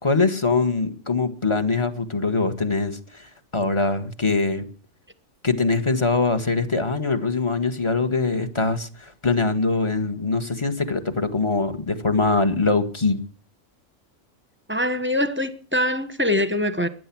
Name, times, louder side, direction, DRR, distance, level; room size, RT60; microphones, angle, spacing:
voice 1, 0.0-3.2 3.5-4.6 5.4-13.2, left 3 dB, 25° left, 1.4 m, -23 dB
voice 2, 14.7-16.9, left 1 dB, 10° right, 1.1 m, -23 dB
15.5 x 11.0 x 6.0 m
omnidirectional pair, 1.4 m